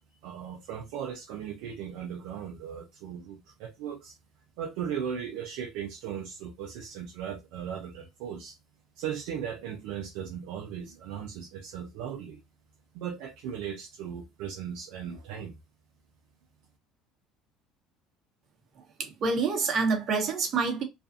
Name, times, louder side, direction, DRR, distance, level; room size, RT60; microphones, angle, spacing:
voice 1, 0.2-4.2 4.6-8.6 9.0-12.4 12.9-15.6, right 8 dB, 75° right, 0.5 m, -37 dB
voice 2, 19.0-20.8, right 4 dB, 50° right, 1.0 m, -27 dB
2.5 x 2.3 x 2.4 m
supercardioid pair, 80°, 0 cm